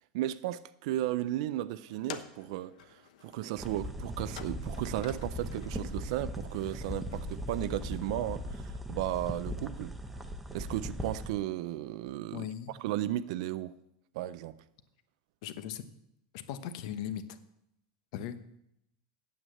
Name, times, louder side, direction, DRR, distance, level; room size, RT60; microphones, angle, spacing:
voice 1, 0.0-9.9 10.5-13.8 14.1-14.6, right 14 dB, 55° right, 0.4 m, -35 dB
sound 1, 1.9-8.6, left 9 dB, 90° left, 0.9 m, -51 dB
sound 2, 3.6-11.3, equal, 5° right, 0.6 m, -39 dB
voice 2, 12.3-12.7 15.4-15.8 16.3-17.2 18.1-18.6, left 10 dB, 55° left, 0.9 m, -38 dB
9.2 x 8.0 x 7.6 m
supercardioid pair, 170°, 4 cm